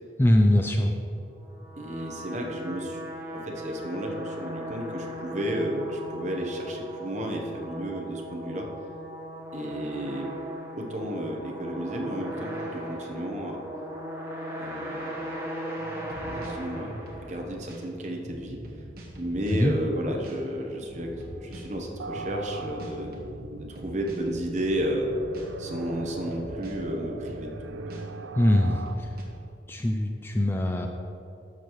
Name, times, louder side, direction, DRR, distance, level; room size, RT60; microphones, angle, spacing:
voice 1, 0.2-0.9 19.5-19.7 28.4-29.1 29.7-30.9, left 1 dB, 10° left, 3 dB, 0.4 m, -22 dB
sound 1, 1.4-17.7, equal, 15° right, 1.1 m, -38 dB
voice 2, 1.8-3.0 3.3-8.7 9.5-10.3 10.8-13.7 14.6-15.1 16.2-18.6 19.2-21.1 21.4-23.2 23.7-25.1 25.6-27.9, equal, 40° right, 1 dB, 0.9 m, -32 dB
sound 2, 15.8-29.2, right 1 dB, 55° right, 1.2 m, -43 dB
sound 3, 22.0-28.9, right 3 dB, 85° right, 0.5 m, -40 dB
11.5 x 6.5 x 3.1 m, 2.7 s
head